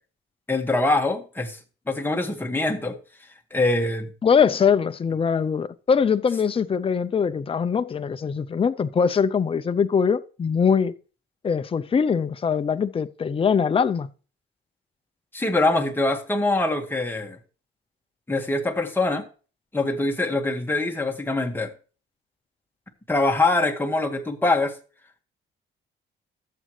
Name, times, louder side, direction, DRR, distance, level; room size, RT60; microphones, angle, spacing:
voice 1, 0.5-1.6 1.9-3.0 3.5-4.1 15.3-17.4 18.3-19.2 19.7-21.7 23.1-24.7, left 2 dB, 10° left, 1.7 m, -23 dB
voice 2, 4.2-10.9 11.4-14.1, left 6 dB, 30° left, 0.5 m, -22 dB
13.0 x 7.6 x 3.2 m
cardioid pair, 90°, 20 cm